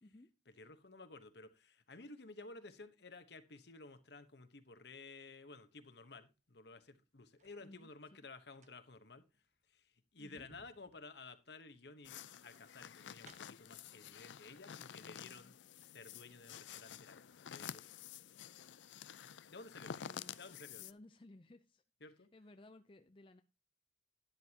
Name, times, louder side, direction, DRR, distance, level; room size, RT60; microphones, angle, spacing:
voice 1, 0.0-0.3 7.6-7.9 10.2-10.5 14.6-15.6 19.9-23.4, left 2 dB, 30° left, 0.5 m, -60 dB
voice 2, 0.6-9.2 9.7-9.8 10.1-15.5 15.8-17.8 19.5-20.9 22.0-22.3, left 3 dB, 65° left, 1.1 m, -54 dB
sound 1, 6.9-7.6 8.4-13.8 14.7-14.8 15.2-16.0 16.3-16.4, right 4 dB, 40° right, 0.9 m, -68 dB
sound 2, 12.0-20.9, left 9 dB, 80° left, 0.4 m, -51 dB
12.5 x 10.5 x 2.9 m
head